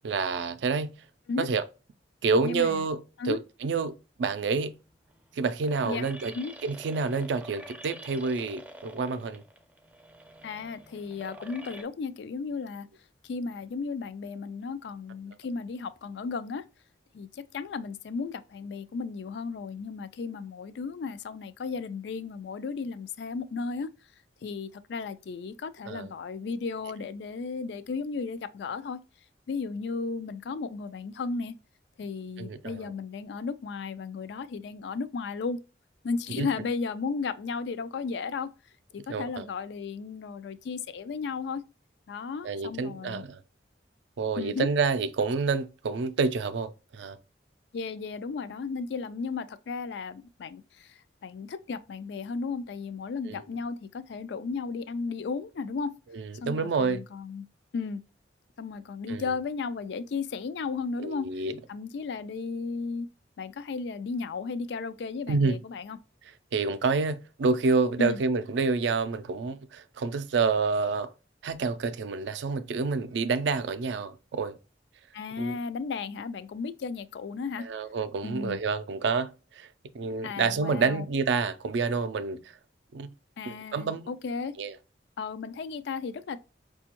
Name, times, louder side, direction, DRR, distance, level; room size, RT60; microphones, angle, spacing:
voice 1, 0.0-0.9 1.4-1.6 2.2-3.0 3.3-4.7 5.4-6.3 6.6-9.4 25.9-26.1 32.4-32.9 36.4-36.5 39.1-39.5 42.4-43.4 44.2-47.2 53.3-53.4 56.1-57.0 59.1-59.2 61.0-61.5 65.3-65.6 66.5-71.1 71.4-74.6 75.4-75.6 77.6-79.3 79.6-79.7 79.9-82.4 82.9-83.1 83.5-84.1 84.6-84.7, right 4 dB, 75° right, 0.4 m, -28 dB
voice 2, 2.4-2.8 3.2-3.4 5.8-6.1 6.3-6.5 10.4-12.9 13.2-16.6 17.1-23.9 24.4-29.0 29.5-31.5 32.0-35.6 36.0-38.5 38.9-41.6 42.1-43.2 44.4-44.7 47.7-55.9 56.4-57.5 57.7-58.0 58.6-63.1 63.4-66.0 68.0-68.2 75.1-77.7 78.2-78.6 80.2-81.1 83.4-84.5 85.2-86.4, left 4 dB, 70° left, 0.3 m, -34 dB
sound 1, 4.8-11.8, right 1 dB, 10° right, 0.4 m, -47 dB
5.0 x 2.3 x 2.9 m
head